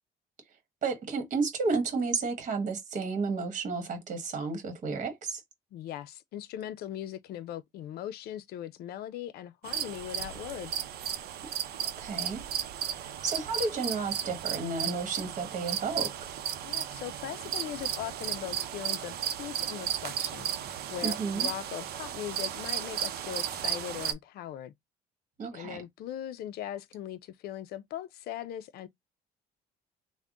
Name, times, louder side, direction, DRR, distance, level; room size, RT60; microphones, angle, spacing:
voice 1, 0.8-5.4 12.0-12.4 13.0-16.1 21.0-21.5 25.4-25.8, right 4 dB, 50° right, 1.3 m, -32 dB
voice 2, 5.7-10.8 16.6-24.7 25.5-28.9, left 11 dB, 70° left, 0.5 m, -40 dB
sound 1, 9.6-24.1, right 10 dB, 70° right, 0.6 m, -34 dB
3.5 x 2.1 x 3.7 m
cardioid pair, 110°, 17 cm